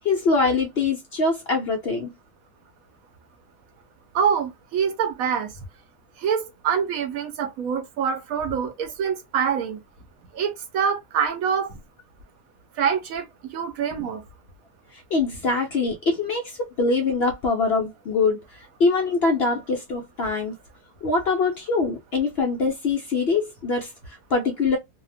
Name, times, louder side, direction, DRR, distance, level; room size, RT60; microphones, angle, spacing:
voice 1, 0.0-2.1 14.9-18.4 18.8-20.5 21.0-24.8, left 3 dB, 70° left, 0.5 m, -23 dB
voice 2, 4.1-5.5 6.2-9.8 10.3-11.7 12.8-13.3 13.5-14.2, right 7 dB, 65° right, 1.0 m, -25 dB
2.8 x 2.0 x 2.5 m
omnidirectional pair, 1.7 m